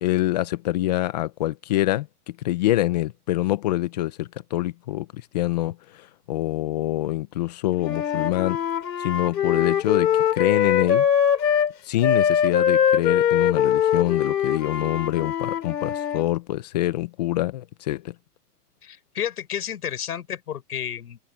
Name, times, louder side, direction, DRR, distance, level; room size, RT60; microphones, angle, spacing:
voice 1, 0.0-5.1 5.3-8.6 9.0-11.1 11.8-18.1, left 15 dB, 25° left, 1.0 m, -25 dB
Wind instrument woodwind instrument, 7.8-11.7 12.0-16.3, left 9 dB, 90° left, 3.7 m, -22 dB
voice 2, 18.8-21.2, left 9 dB, 70° left, 7.6 m, -31 dB
hypercardioid pair, 175°, 48 cm